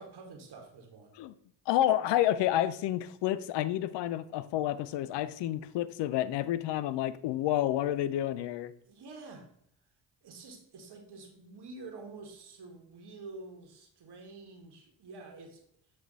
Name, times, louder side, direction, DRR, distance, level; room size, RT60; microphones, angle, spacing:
voice 1, 0.0-1.2 8.9-9.5 10.2-15.6, right 3 dB, 55° right, 3 dB, 1.6 m, -48 dB
voice 2, 1.7-8.7, left 13 dB, 65° left, 16 dB, 0.5 m, -29 dB
7.6 x 3.2 x 4.0 m, 0.71 s
hypercardioid pair, 50°, 46 cm